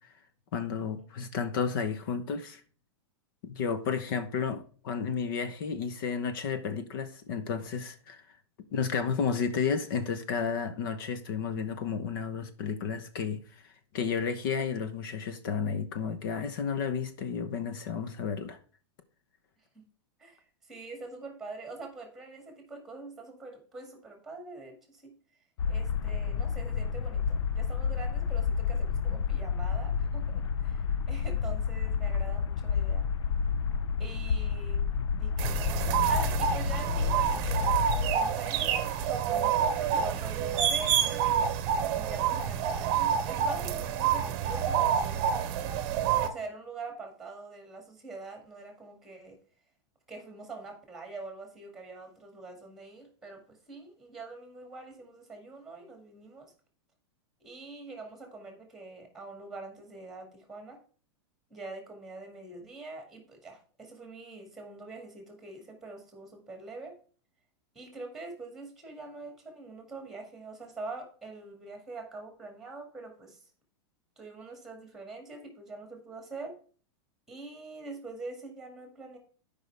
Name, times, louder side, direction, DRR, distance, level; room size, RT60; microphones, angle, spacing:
voice 1, 0.5-2.6 3.4-8.2 8.7-13.4 13.9-18.6, left 6 dB, 50° left, 1.0 m, -32 dB
voice 2, 20.2-25.1 25.7-33.1 34.0-34.9 35.2-37.7 38.0-41.4 41.9-45.3 46.1-49.4 50.1-56.5 57.4-60.8 61.5-67.0 67.7-73.5 74.2-76.6 77.3-79.2, right 3 dB, ahead, 2.1 m, -44 dB
sound 1, 25.6-38.2, left 6 dB, 90° left, 0.6 m, -30 dB
sound 2, 35.4-46.3, right 8 dB, 35° right, 0.9 m, -28 dB
12.5 x 5.4 x 3.4 m
supercardioid pair, 170°, 14 cm